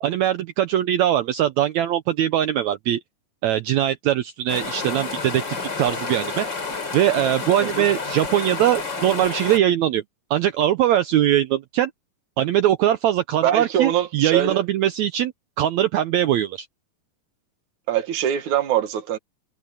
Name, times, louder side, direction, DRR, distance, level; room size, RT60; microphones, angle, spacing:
voice 1, 0.0-3.0 3.4-5.4 5.8-6.5 6.9-10.0 10.3-11.9 12.4-15.3 15.6-16.7, right 11 dB, 85° right, 1.6 m, -21 dB
sound 1, 4.5-9.6, left 4 dB, 30° left, 4.2 m, -30 dB
voice 2, 13.4-14.6 17.9-19.2, right 10 dB, 60° right, 2.8 m, -23 dB
omnidirectional pair, 4.2 m